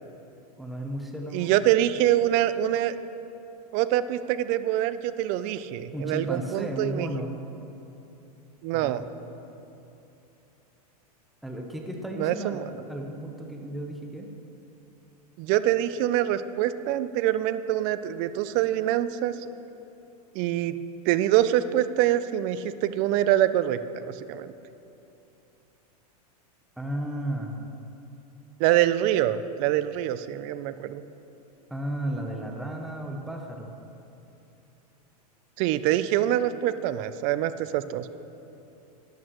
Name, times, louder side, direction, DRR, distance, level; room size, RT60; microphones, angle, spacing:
voice 1, 0.6-1.6 5.9-7.4 8.7-9.0 11.4-14.3 26.8-27.6 31.7-33.8, right 1 dB, ahead, 1 dB, 0.7 m, -34 dB
voice 2, 1.3-2.9 3.7-7.1 8.6-9.0 12.2-12.6 15.4-19.4 20.3-20.8 21.1-24.5 28.6-31.0 35.6-38.1, right 12 dB, 40° right, 13 dB, 0.4 m, -25 dB
12.5 x 10.5 x 3.1 m, 2.9 s
supercardioid pair, 130°, 20 cm